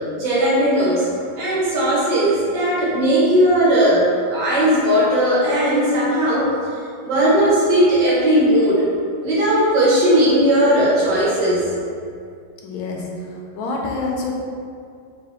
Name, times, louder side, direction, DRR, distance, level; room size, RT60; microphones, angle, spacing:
voice 1, 0.1-1.1 1.4-6.5 7.0-8.9 9.2-11.7, equal, 60° right, -8 dB, 1.5 m, -17 dB
voice 2, 12.6-13.1 13.6-14.3, left 3 dB, 80° left, -1 dB, 1.4 m, -26 dB
3.7 x 3.4 x 3.5 m, 2.3 s
omnidirectional pair, 2.3 m